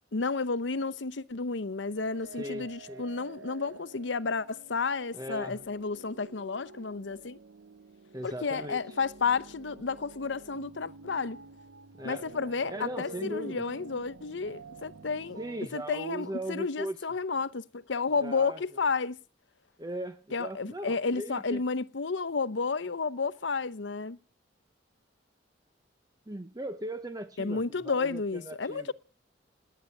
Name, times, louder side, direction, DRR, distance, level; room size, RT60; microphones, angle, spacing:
voice 1, 0.1-7.4 8.2-11.4 12.0-15.4 15.7-19.2 20.3-24.2 27.4-28.9, left 4 dB, 75° left, 0.8 m, -31 dB
sound 1, 2.0-15.7, right 3 dB, 80° right, 0.7 m, -48 dB
voice 2, 2.4-3.0 5.1-5.6 8.1-8.8 12.0-12.2 12.7-13.6 15.4-17.0 18.2-18.6 19.8-21.6 26.3-28.9, right 1 dB, 20° right, 0.8 m, -38 dB
18.5 x 10.0 x 6.4 m
head